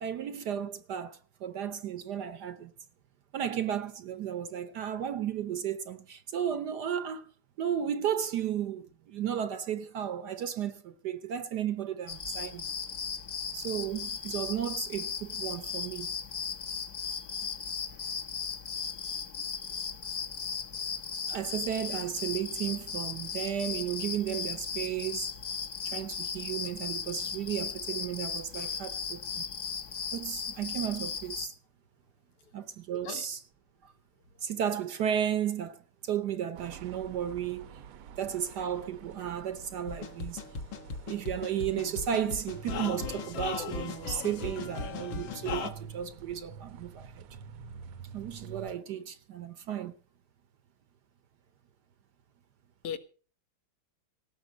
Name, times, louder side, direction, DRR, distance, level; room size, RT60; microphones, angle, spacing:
voice 1, 0.0-2.7 3.3-7.3 7.6-12.7 13.5-16.1 21.3-25.3 25.8-29.4 30.1-31.5 32.5-33.4 34.4-37.7 38.2-40.4 41.1-47.3 48.1-49.9, right 9 dB, 60° right, 1.2 m, -34 dB
sound 1, 12.1-31.5, left 6 dB, 50° left, 1.8 m, -37 dB
voice 2, 25.8-26.1 33.0-33.3 52.8-53.0, left 8 dB, 90° left, 2.2 m, -38 dB
sound 2, 36.6-48.7, right 6 dB, 80° right, 1.7 m, -48 dB
sound 3, 39.9-45.7, left 4 dB, 65° left, 2.1 m, -37 dB
18.0 x 7.1 x 7.1 m
omnidirectional pair, 2.4 m